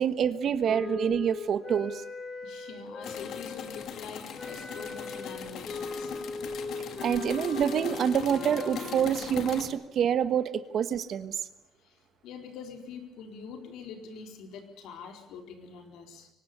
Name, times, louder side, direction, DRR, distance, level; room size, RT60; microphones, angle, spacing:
voice 1, 0.0-2.0 7.0-11.3, right 8 dB, 50° right, 12 dB, 1.3 m, -27 dB
Wind instrument woodwind instrument, 0.7-4.0 4.4-9.0, left 4 dB, 25° left, 5.8 m, -39 dB
voice 2, 2.4-6.2 11.8-16.3, left 5 dB, 80° left, 4 dB, 4.2 m, -44 dB
sound 1, 3.0-9.7, left 8 dB, 60° left, 2.5 m, -40 dB
24.0 x 19.0 x 6.9 m, 0.90 s
cardioid pair, 130°, 0 cm